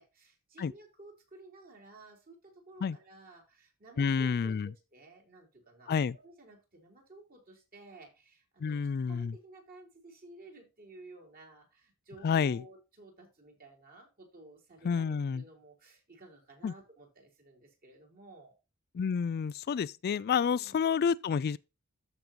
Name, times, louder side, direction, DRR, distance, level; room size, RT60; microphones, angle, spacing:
voice 1, 0.0-8.8 9.1-18.5 20.5-21.0, right 2 dB, 40° right, 3.9 m, -54 dB
voice 2, 4.0-4.7 5.9-6.1 8.6-9.3 12.2-12.6 14.8-15.4 16.6-16.7 18.9-21.6, left 6 dB, 45° left, 0.3 m, -29 dB
14.0 x 5.3 x 2.9 m
head